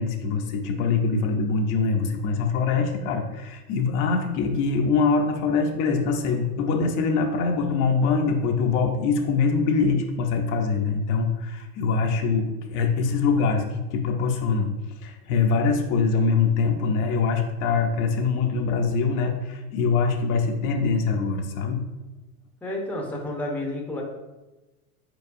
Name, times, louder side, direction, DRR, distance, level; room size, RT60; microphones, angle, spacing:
voice 1, 0.0-21.8, left 4 dB, 40° left, 2 dB, 0.7 m, -23 dB
voice 2, 22.6-24.0, left 1 dB, 5° left, 0 dB, 0.7 m, -30 dB
4.7 x 4.3 x 2.5 m, 1.1 s
hypercardioid pair, 105°, 45 cm